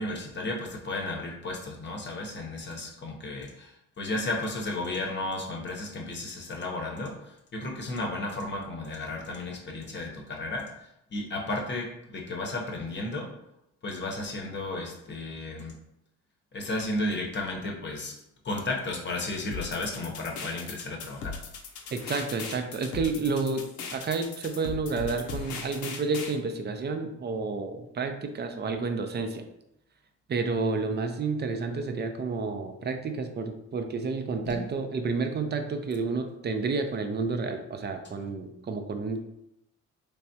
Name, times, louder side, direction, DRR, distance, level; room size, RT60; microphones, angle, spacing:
voice 1, 0.0-7.1 7.5-10.6 11.1-13.3 13.8-15.7 16.5-18.1 18.4-21.4 34.4-34.6, left 2 dB, 35° left, -1 dB, 0.8 m, -33 dB
sound 1, 19.5-26.4, left 5 dB, 75° left, 0.6 m, -38 dB
voice 2, 21.9-29.4 30.3-39.2, right 4 dB, 35° right, 6 dB, 0.5 m, -30 dB
3.3 x 3.3 x 2.7 m, 0.84 s
cardioid pair, 90°, 30 cm